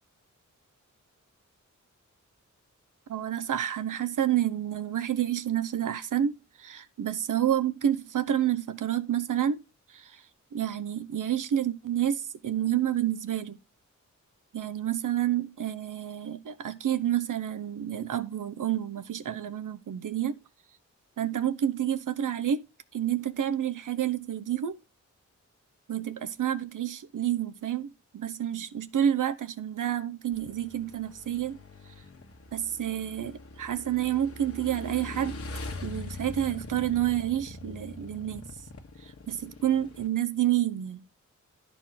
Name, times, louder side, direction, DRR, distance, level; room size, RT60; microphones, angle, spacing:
voice 1, 3.1-9.6 9.9-10.1 10.5-13.6 14.5-20.4 21.2-22.6 22.9-24.8 25.9-31.6 32.5-35.4 35.8-38.5 39.3-41.0, right 10 dB, 85° right, 0.9 m, -29 dB
Motorcycle / Engine, 30.3-40.1, left 2 dB, 50° left, 1.5 m, -42 dB
12.5 x 4.5 x 5.7 m
wide cardioid pair, 175°, 30 cm